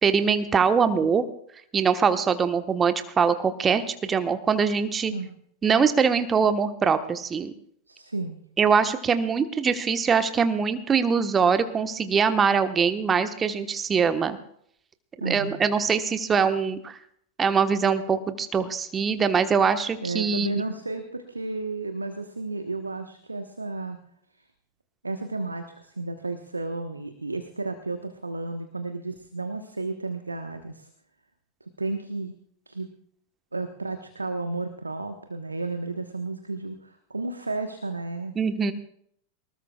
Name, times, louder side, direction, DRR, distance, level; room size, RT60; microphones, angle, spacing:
voice 1, 0.0-1.2 1.7-5.1 5.6-7.5 8.6-14.4 15.2-17.0 17.4-20.5 38.4-38.7, right 6 dB, 20° right, 9 dB, 1.2 m, -23 dB
voice 2, 7.9-8.4 15.2-15.6 20.0-24.0 24.4-24.5 25.0-30.9 31.8-32.3 32.7-32.9 33.5-38.3, right 3 dB, 80° right, 8 dB, 1.1 m, -32 dB
23.5 x 20.0 x 2.4 m, 0.67 s
figure-of-eight pair, 90°, 0 cm